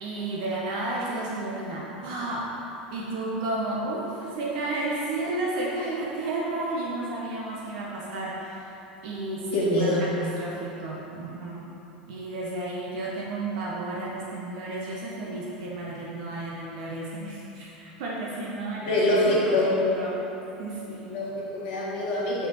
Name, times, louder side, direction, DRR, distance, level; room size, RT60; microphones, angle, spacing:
voice 1, 0.0-2.5 2.9-8.7 9.0-11.6 12.1-19.0 19.6-19.7 19.9-20.1 20.6-21.1, right 2 dB, 55° right, -5 dB, 1.2 m, -32 dB
voice 2, 9.5-10.1 18.8-19.8 21.1-22.5, left 1 dB, 50° left, -6 dB, 1.6 m, -24 dB
7.0 x 6.2 x 4.4 m, 3.0 s
figure-of-eight pair, 80°, 5 cm